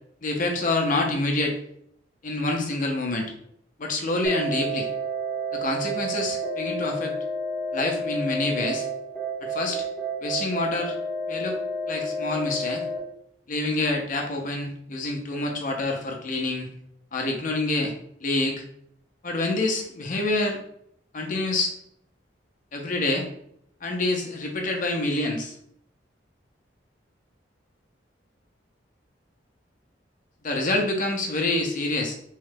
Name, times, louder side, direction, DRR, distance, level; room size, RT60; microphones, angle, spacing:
voice 1, 0.2-1.6 2.2-3.3 3.8-4.9 5.5-7.1 7.7-8.9 9.4-9.8 10.2-11.0 11.3-11.6 11.9-12.8 13.5-16.7 17.1-17.9 18.2-18.6 19.2-20.6 21.1-21.7 22.7-23.3 23.8-25.5 30.4-32.2, left 2 dB, 45° left, 2 dB, 0.7 m, -27 dB
sound 1, 4.2-13.0, right 1 dB, 5° left, 0.7 m, -30 dB
3.1 x 2.3 x 3.3 m, 0.70 s
head